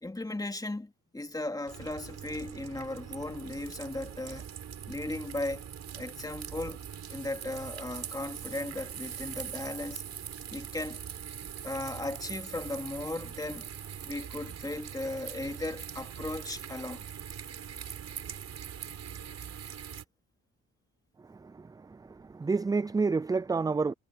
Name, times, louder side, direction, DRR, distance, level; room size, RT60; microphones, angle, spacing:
voice 1, 0.0-4.5 4.9-5.7 5.9-10.0 10.5-11.0 11.6-13.7 14.0-17.1, left 2 dB, 10° left, 2.6 m, -37 dB
sound 1, 1.7-20.0, right 8 dB, 60° right, 6.1 m, -42 dB
voice 2, 21.3-23.9, right 4 dB, 15° right, 0.4 m, -30 dB
cardioid pair, 90°, 30 cm